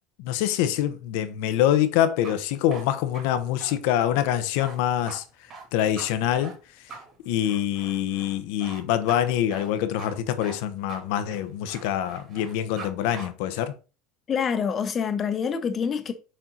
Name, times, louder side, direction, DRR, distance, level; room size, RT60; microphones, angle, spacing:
voice 1, 0.2-5.2 5.7-6.5 7.2-13.7, left 11 dB, 75° left, 0.9 m, -25 dB
sound 1, 2.0-12.9 13.1-13.3, right 4 dB, 40° right, 2.7 m, -43 dB
voice 2, 14.3-16.1, left 6 dB, 30° left, 0.9 m, -26 dB
6.6 x 4.4 x 4.0 m
supercardioid pair, 130°, 0 cm